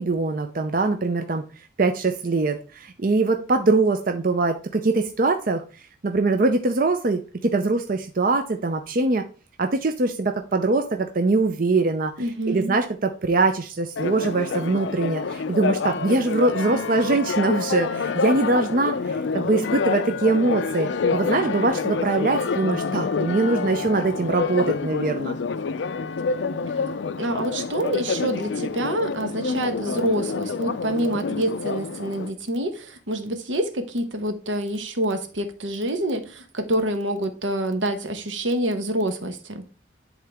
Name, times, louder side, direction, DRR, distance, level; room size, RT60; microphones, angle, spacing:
voice 1, 0.0-1.4 1.8-5.6 6.0-9.2 9.6-12.1 12.5-25.4, right 3 dB, 45° right, 0.5 m, -22 dB
voice 2, 12.2-12.8 27.2-39.6, right 1 dB, 80° right, 1.1 m, -27 dB
Church bell, 14.0-32.3, left 5 dB, 70° left, 0.4 m, -27 dB
11.0 x 3.8 x 3.5 m
head